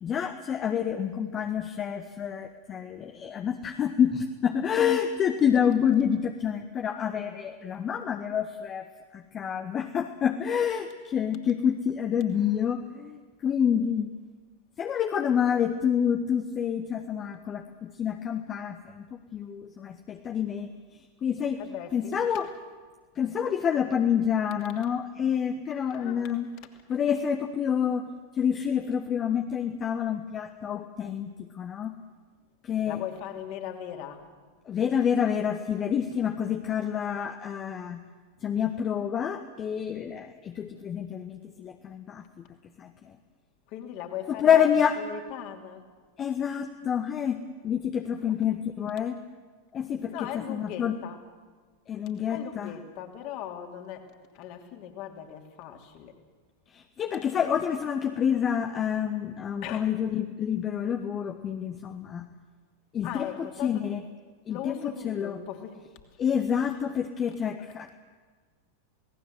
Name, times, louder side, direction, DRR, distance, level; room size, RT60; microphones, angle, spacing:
voice 1, 0.0-8.9 9.1-14.1 14.8-19.1 19.3-21.6 21.9-22.5 23.1-26.5 26.9-28.1 28.3-32.0 32.6-33.0 34.6-38.0 38.4-42.3 42.8-43.1 44.3-45.0 46.2-49.1 49.7-51.0 51.9-52.7 56.7-62.3 62.9-63.3 63.6-64.0 64.5-65.4 66.2-67.9, left 8 dB, 25° left, 7 dB, 1.1 m, -28 dB
voice 2, 21.6-22.2 25.9-26.4 32.8-34.3 43.7-45.9 48.3-48.4 50.1-51.2 52.3-56.2 59.6-59.9 63.0-63.9 64.5-65.8, left 10 dB, 45° left, 4 dB, 2.9 m, -39 dB
28.0 x 18.5 x 7.9 m, 1.5 s
figure-of-eight pair, 90°, 0 cm